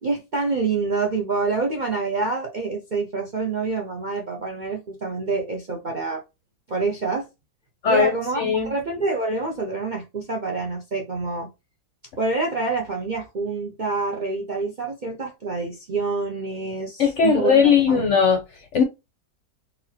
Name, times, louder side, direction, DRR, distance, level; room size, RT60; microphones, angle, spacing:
voice 1, 0.0-6.2 6.7-7.3 7.9-11.5 12.2-18.1, right 3 dB, 50° right, 0.6 m, -27 dB
voice 2, 7.8-8.7 17.0-18.4 18.7-18.8, left 6 dB, 60° left, 0.8 m, -18 dB
4.1 x 2.6 x 2.8 m
omnidirectional pair, 1.8 m